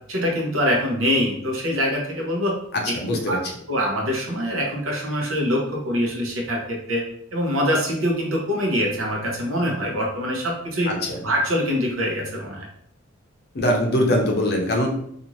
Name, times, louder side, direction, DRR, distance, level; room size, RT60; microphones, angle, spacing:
voice 1, 0.1-2.6 3.1-3.4 3.7-7.0 7.3-10.9 11.2-12.7, equal, 75° right, -1 dB, 0.8 m, -24 dB
voice 2, 2.7-3.5 10.9-11.2 13.5-14.9, left 1 dB, 55° left, 2 dB, 0.6 m, -22 dB
2.6 x 2.4 x 3.0 m, 0.69 s
head